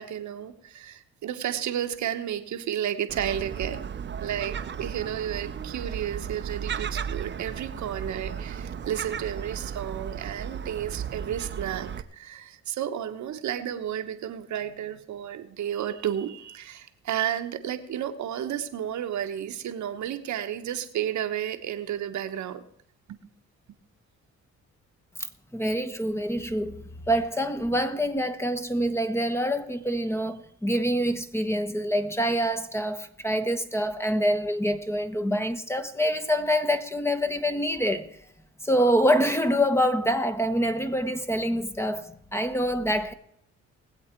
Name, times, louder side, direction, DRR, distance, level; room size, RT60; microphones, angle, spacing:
voice 1, 0.0-3.9 4.2-22.6 23.1-23.2, right 10 dB, 70° right, 1.1 m, -32 dB
Gull seagull, 3.1-12.0, right 7 dB, 35° right, 0.8 m, -35 dB
voice 2, 25.5-38.1 38.6-43.1, equal, 10° left, 1.0 m, -26 dB
20.5 x 7.9 x 4.5 m
cardioid pair, 90°, 30 cm